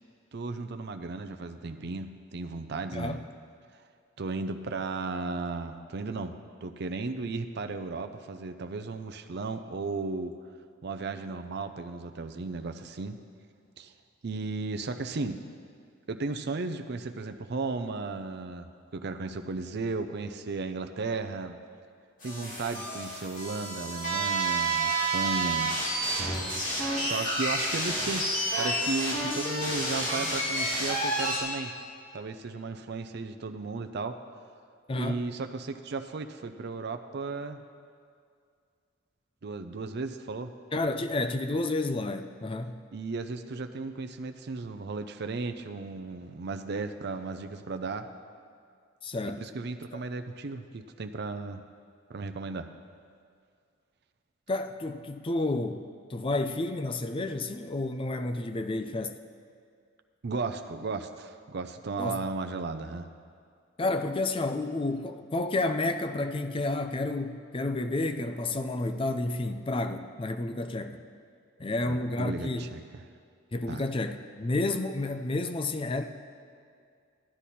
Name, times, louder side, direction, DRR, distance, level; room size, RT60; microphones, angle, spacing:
voice 1, 0.3-3.2 4.2-6.3 6.6-10.3 10.8-13.2 13.8-13.9 14.2-15.4 16.1-18.7 18.9-21.6 22.2-25.7 26.9-31.7 32.1-34.1 35.0-37.6 39.4-40.5 42.9-48.1 49.3-51.6 52.1-52.7 60.2-63.1 71.8-72.8 73.7-73.8, right 3 dB, 55° right, 7 dB, 0.5 m, -35 dB
sound 1, 22.2-31.4, right 1 dB, 45° left, 2.5 m, -29 dB
voice 2, 34.9-35.3 40.7-42.8 49.0-49.4 49.9-50.0 54.5-59.2 62.0-62.2 63.8-71.0 71.6-72.7 73.5-76.1, left 2 dB, 25° left, 8 dB, 0.5 m, -30 dB
13.5 x 10.0 x 4.2 m, 2.2 s
head